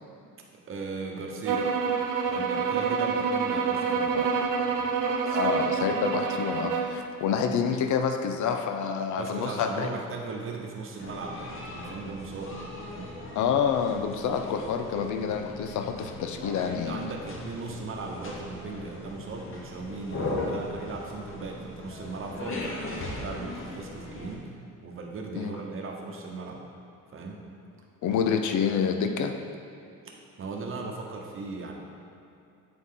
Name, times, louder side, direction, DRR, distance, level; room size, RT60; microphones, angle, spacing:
voice 1, 0.7-1.7 2.3-4.3 4.6-4.9 5.2-6.0 9.2-12.6 12.9-13.2 16.5-24.5 24.8-26.6 27.1-27.4 28.1-28.2 30.0-31.7, right 3 dB, 40° right, 0 dB, 1.0 m, -38 dB
sound 1, 1.4-7.0, right 5 dB, 70° right, 0.7 m, -27 dB
voice 2, 5.2-10.0 13.4-17.1 25.4-25.5 28.0-29.4, left 6 dB, 60° left, 6 dB, 0.6 m, -28 dB
sound 2, 11.0-24.4, left 2 dB, 40° left, 1.0 m, -38 dB
8.5 x 4.0 x 3.7 m, 2.7 s
cardioid pair, 130°, 33 cm